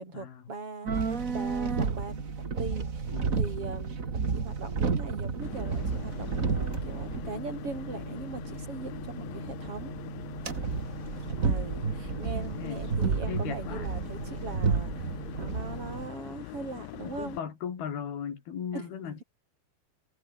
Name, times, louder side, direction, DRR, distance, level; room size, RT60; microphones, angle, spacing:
voice 1, 0.0-4.0 4.3-9.9 11.2-17.4 18.7-19.2, right 3 dB, 30° right, 7.4 m, -41 dB
sound 1, 0.8-16.1, right 5 dB, 60° right, 0.8 m, -32 dB
voice 2, 3.1-3.4 10.7-11.0 12.5-12.9 13.3-13.9 16.6-16.7 17.0-19.2, left 7 dB, 60° left, 5.3 m, -37 dB
sound 2, 5.4-17.4, left 18 dB, 90° left, 3.2 m, -43 dB
omnidirectional pair, 5.1 m